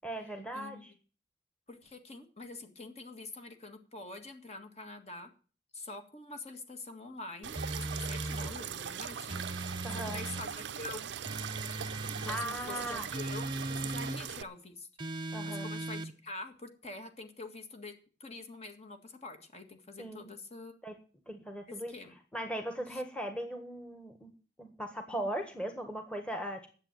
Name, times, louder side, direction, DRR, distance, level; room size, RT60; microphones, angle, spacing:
voice 1, 0.0-0.9 9.8-10.2 12.3-13.1 15.3-15.7 20.0-20.3 20.8-20.9 21.3-21.9 22.3-24.3 24.6-26.7, right 1 dB, 5° left, 5 dB, 1.5 m, -38 dB
voice 2, 0.5-0.9 1.7-5.3 5.7-11.1 12.0-14.9 15.5-17.9 18.2-20.8 21.7-22.1 22.9-23.0, left 2 dB, 35° left, 6 dB, 1.9 m, -46 dB
sound 1, 7.4-14.4, right 8 dB, 85° right, 0.6 m, -41 dB
sound 2, 7.5-8.6 9.3-10.5 11.2-12.5 13.1-14.2 15.0-16.1, right 2 dB, 25° right, 0.8 m, -38 dB
10.5 x 7.7 x 9.0 m, 0.39 s
head